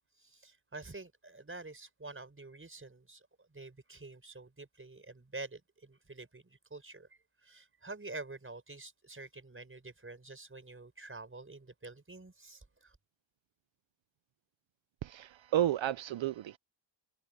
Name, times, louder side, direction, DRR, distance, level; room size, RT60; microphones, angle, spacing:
voice 1, 0.2-7.1 7.4-13.0, right 3 dB, 25° right, 5.6 m, -48 dB
voice 2, 15.0-16.6, right 11 dB, 75° right, 0.6 m, -32 dB
wide cardioid pair, 110°, 47 cm